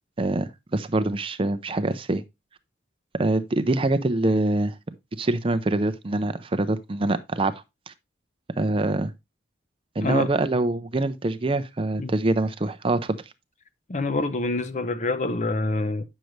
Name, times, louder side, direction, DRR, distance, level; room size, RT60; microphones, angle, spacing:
voice 1, 0.2-2.2 3.1-4.7 5.2-7.5 7.9-8.0 8.6-9.1 10.0-13.2, right 2 dB, 30° right, 0.5 m, -24 dB
voice 2, 13.9-16.0, left 2 dB, 40° left, 0.7 m, -26 dB
9.1 x 6.5 x 3.1 m
head